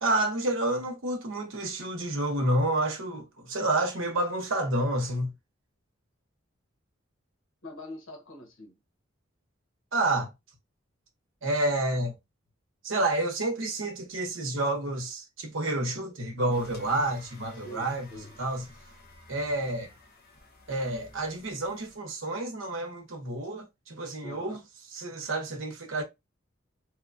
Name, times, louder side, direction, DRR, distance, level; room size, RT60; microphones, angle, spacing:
voice 1, 0.0-5.3 9.9-10.3 11.4-12.1 12.8-18.1 18.4-18.6 19.3-19.9 20.7-24.6 24.9-26.0, right 2 dB, 75° right, 0.8 m, -29 dB
voice 2, 7.6-8.8 17.6-18.4 24.2-24.6, left 1 dB, 90° left, 1.1 m, -44 dB
sound 1, 16.5-22.0, left 3 dB, 50° left, 0.8 m, -52 dB
2.9 x 2.2 x 2.5 m
head